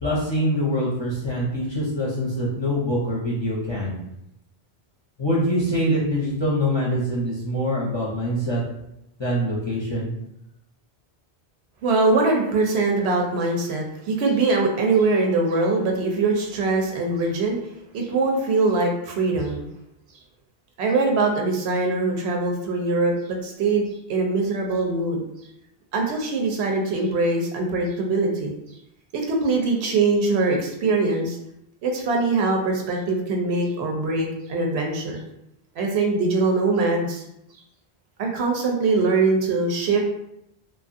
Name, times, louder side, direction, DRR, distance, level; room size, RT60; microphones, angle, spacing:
voice 1, 0.0-4.0 5.2-8.6 9.2-10.1, equal, 35° left, -5 dB, 0.5 m, -24 dB
voice 2, 11.8-17.6 17.9-19.7 20.8-25.3 25.9-28.6 29.1-31.4 31.8-35.2 35.8-37.2 38.2-40.0, right 3 dB, 85° right, 1 dB, 0.9 m, -22 dB
2.9 x 2.4 x 2.5 m, 0.81 s
omnidirectional pair, 1.1 m